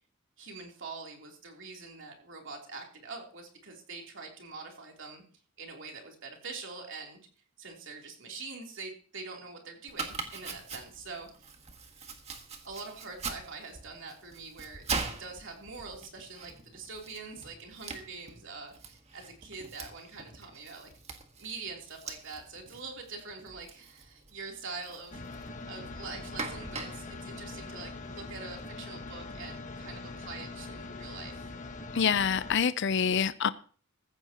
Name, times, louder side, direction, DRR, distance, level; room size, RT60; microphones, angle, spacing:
voice 1, 0.4-5.2 5.6-7.2 7.6-11.5 12.6-20.9 21.4-31.5, right 4 dB, 60° right, 3.4 m, -44 dB
Domestic sounds home sounds, 9.9-28.3, right 4 dB, 30° right, 1.8 m, -43 dB
sound 1, 25.1-32.6, left 3 dB, 35° left, 1.4 m, -42 dB
voice 2, 31.9-33.5, left 7 dB, 55° left, 0.5 m, -26 dB
15.5 x 15.0 x 3.0 m
head